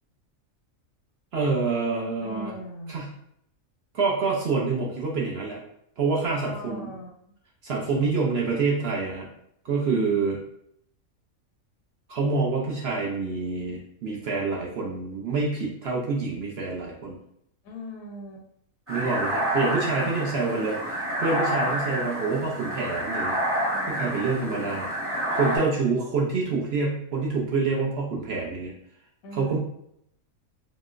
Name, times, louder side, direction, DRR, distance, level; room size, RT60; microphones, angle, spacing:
voice 1, 1.3-2.5 2.9-3.1 3.9-5.6 6.0-6.9 7.6-9.3 9.6-10.4 12.1-17.2 18.9-23.4 23.9-28.7 29.3-29.6, right 4 dB, 60° right, -3 dB, 0.7 m, -27 dB
voice 2, 2.2-3.0 6.3-7.1 17.6-18.5 19.8-20.6 23.7-24.5 29.2-29.6, equal, 80° left, 1 dB, 1.1 m, -41 dB
sound 1, 18.9-25.6, equal, 10° right, 0.8 m, -28 dB
3.6 x 2.1 x 2.4 m, 0.73 s
omnidirectional pair, 1.4 m